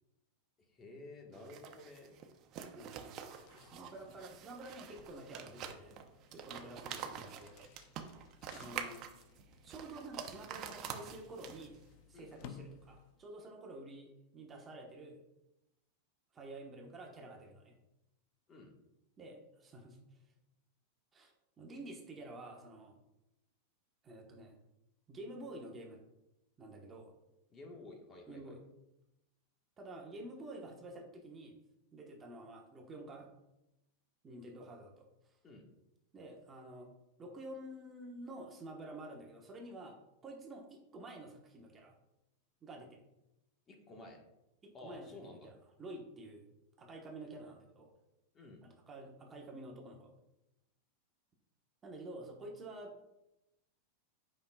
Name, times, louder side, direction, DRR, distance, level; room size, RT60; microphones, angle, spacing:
voice 1, 0.7-2.2 12.1-12.3 18.5-18.7 27.5-28.5 35.4-35.6 43.7-44.2 44.7-45.5 48.3-48.6, left 2 dB, 25° left, 1 dB, 1.5 m, -52 dB
sound 1, 1.3-11.9, right 8 dB, 40° right, 0.7 m, -47 dB
voice 2, 2.7-3.1 3.6-6.0 6.3-7.6 8.5-9.0 9.6-11.7 12.1-15.2 16.3-17.7 19.2-20.0 21.1-23.0 24.0-24.5 25.1-26.0 26.6-27.1 28.3-28.6 29.8-31.6 31.9-33.3 34.2-35.3 36.1-36.9 37.2-40.0 40.2-41.9 42.6-43.0 44.6-46.4 46.8-47.9 48.6-50.1 51.8-52.9, right 1 dB, 20° right, 0 dB, 1.2 m, -49 dB
sound 2, 3.1-13.4, left 8 dB, 55° left, 0.6 m, -59 dB
8.4 x 5.6 x 2.4 m, 0.92 s
hypercardioid pair, 125°, 0 cm